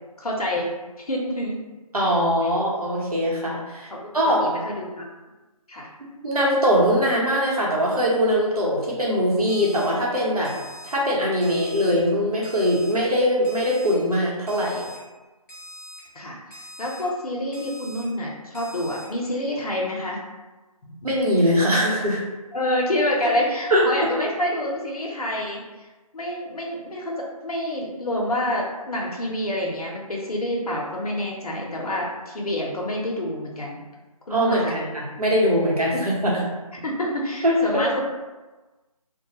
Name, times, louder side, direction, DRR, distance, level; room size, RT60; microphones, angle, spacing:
voice 1, 0.2-0.7 1.0-1.6 2.4-2.6 3.9-4.0 4.4-5.0 5.7-5.9 16.1-20.2 22.5-25.9 26.1-33.8 34.3-34.8 35.9-36.0 36.7-38.0, left 1 dB, 80° left, -2 dB, 0.6 m, -27 dB
voice 2, 1.9-3.9 4.1-4.5 6.0-10.5 10.8-14.8 21.0-22.2 23.7-23.8 34.3-36.4 37.4-37.8, equal, 85° right, -5 dB, 0.9 m, -21 dB
Alarm, 9.5-9.9 10.4-11.0 11.4-11.9 12.4-12.9 13.4-14.0 14.5-15.0 15.5-16.0 16.5-17.0 17.5-18.0 18.5-19.1, equal, 30° left, 0.6 m, -42 dB
2.2 x 2.0 x 2.8 m, 1.2 s
figure-of-eight pair, 160°, 19 cm